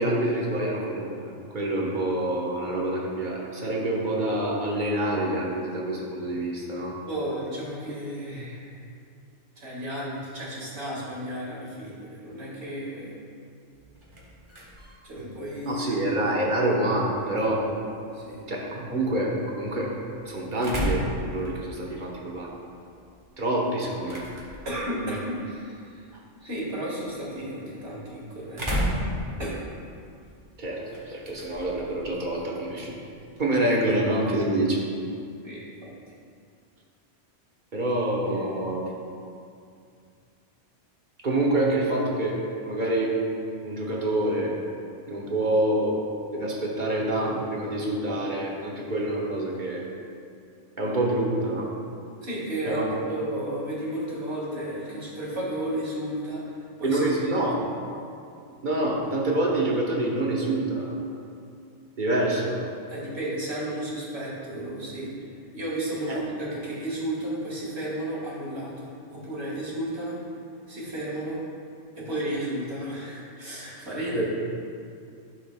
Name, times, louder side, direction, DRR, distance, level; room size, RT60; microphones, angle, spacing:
voice 1, 0.0-6.9 15.6-17.6 18.5-19.9 20.3-21.0 21.3-22.5 23.4-24.3 30.6-32.9 33.4-34.8 37.7-38.8 41.2-42.4 42.6-43.1 43.6-44.5 45.1-46.0 46.3-49.8 50.8-51.7 52.6-52.9 56.8-57.6 58.6-60.9 62.0-62.6 66.1-66.2 74.1-74.2, right 1 dB, 45° right, -3 dB, 1.3 m, -26 dB
voice 2, 7.1-8.7 9.6-13.2 15.0-16.0 18.1-18.4 24.7-26.0 26.4-29.0 29.4-29.6 35.4-35.9 38.2-38.7 52.2-52.8 53.1-56.4 56.8-57.0 57.2-57.6 62.9-65.1 65.5-70.2 70.7-71.4 72.0-74.2, right 1 dB, 65° right, -5 dB, 2.1 m, -33 dB
sound 1, 13.7-33.6, equal, 25° right, 1.3 m, -37 dB
12.0 x 6.5 x 2.3 m, 2.4 s
omnidirectional pair, 1.2 m